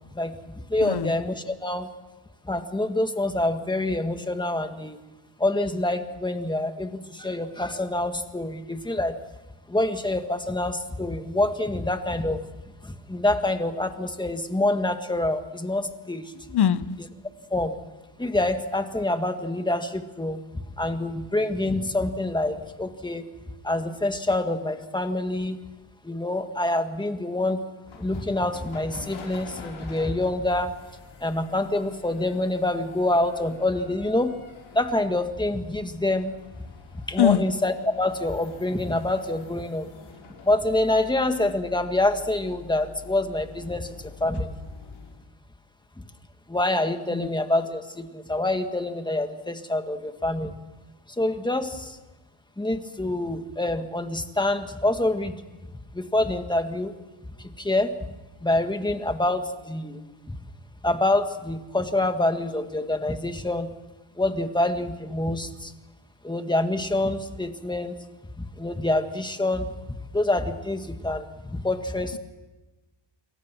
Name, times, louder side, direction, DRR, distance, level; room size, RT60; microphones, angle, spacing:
voice 1, 0.7-1.9 2.4-5.0 5.4-9.2 9.7-12.4 12.8-16.3 17.5-17.8 18.2-20.4 20.8-23.3 23.6-25.6 26.0-27.6 27.9-30.7 31.2-34.3 34.7-36.7 36.9-39.9 40.4-44.5 46.5-50.5 51.2-52.0 52.6-55.3 55.9-56.9 57.4-58.1 58.4-60.0 60.3-60.4 60.8-63.7 64.2-65.7 66.2-68.0 68.4-72.2, left 2 dB, 10° left, 1.8 m, -26 dB
voice 2, 16.5-17.0 37.2-37.4 47.1-47.3, left 10 dB, 60° left, 1.0 m, -22 dB
sound 1, 27.9-45.2, left 5 dB, 80° left, 6.2 m, -47 dB
27.5 x 23.0 x 6.1 m
wide cardioid pair, 130°, 46 cm